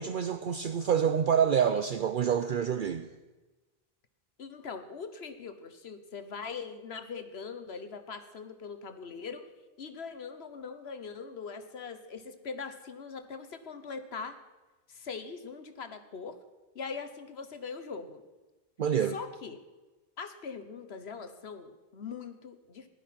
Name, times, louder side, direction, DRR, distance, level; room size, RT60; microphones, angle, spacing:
voice 1, 0.0-3.1 18.8-19.1, right 8 dB, 60° right, 10 dB, 0.8 m, -27 dB
voice 2, 4.4-9.4 9.8-14.4 14.9-16.4 16.7-18.2 19.1-19.6 20.2-22.9, left 5 dB, 90° left, 9 dB, 1.4 m, -41 dB
15.5 x 11.5 x 5.9 m, 1.2 s
omnidirectional pair, 1.0 m